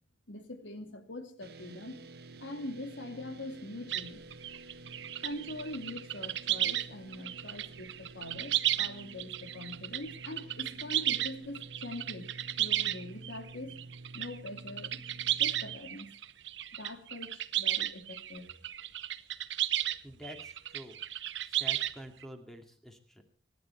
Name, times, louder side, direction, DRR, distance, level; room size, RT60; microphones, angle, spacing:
voice 1, 0.3-2.0 2.4-4.2 5.2-12.3 12.6-13.8 14.1-15.0 15.4-16.1 16.8-18.5, left 1 dB, 75° left, 7 dB, 2.4 m, -43 dB
sound 1, 1.4-15.8, right 2 dB, 55° right, 1.6 m, -50 dB
sound 2, 3.9-6.9 7.1-20.0 20.2-22.2, right 13 dB, 70° right, 0.9 m, -34 dB
voice 2, 20.0-21.0 21.4-23.2, right 1 dB, ahead, 4 dB, 2.2 m, -48 dB
24.5 x 10.5 x 4.4 m, 0.42 s
head